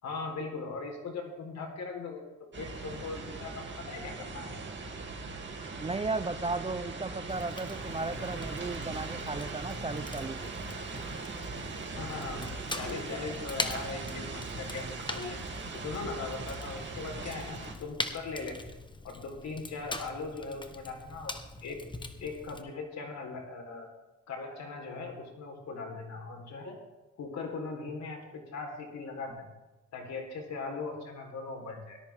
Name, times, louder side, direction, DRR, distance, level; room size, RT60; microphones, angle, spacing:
voice 1, 0.0-2.3 2.6-4.7 12.0-12.5 12.7-15.4 15.7-18.6 19.0-21.3 21.6-21.8 22.2-23.9 24.3-26.8 27.2-29.5 29.9-32.0, left 4 dB, 65° left, 2 dB, 4.1 m, -39 dB
sound 1, 2.5-17.7, right 3 dB, 40° right, 2.7 m, -40 dB
voice 2, 5.8-10.4, right 3 dB, 20° right, 12 dB, 0.6 m, -35 dB
Fire, 7.3-22.6, left 2 dB, 15° left, 1.3 m, -42 dB
18.5 x 13.0 x 3.6 m, 1.1 s
cardioid pair, 90°, 30 cm